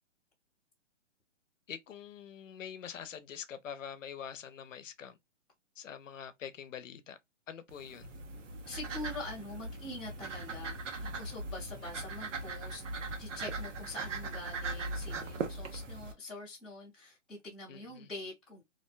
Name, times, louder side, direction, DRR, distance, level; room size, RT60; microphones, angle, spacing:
voice 1, 1.7-5.2 5.8-7.2 7.5-8.1 11.7-12.1 17.7-18.1, left 8 dB, 85° left, 0.7 m, -45 dB
sound 1, 7.7-16.1, right 3 dB, 75° right, 0.9 m, -40 dB
voice 2, 8.7-18.7, left 2 dB, ahead, 0.6 m, -45 dB
2.5 x 2.2 x 2.3 m
hypercardioid pair, 160°, 37 cm